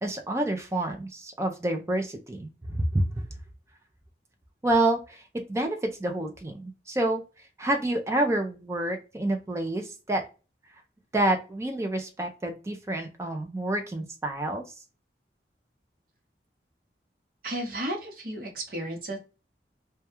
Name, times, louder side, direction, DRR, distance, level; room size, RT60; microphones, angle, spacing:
voice 1, 0.0-3.2 4.6-7.2 7.6-10.3 11.1-14.7, right 1 dB, 15° right, 4 dB, 0.3 m, -28 dB
voice 2, 17.4-19.2, right 1 dB, 50° right, 1 dB, 0.8 m, -33 dB
2.2 x 2.2 x 2.8 m, 0.32 s
head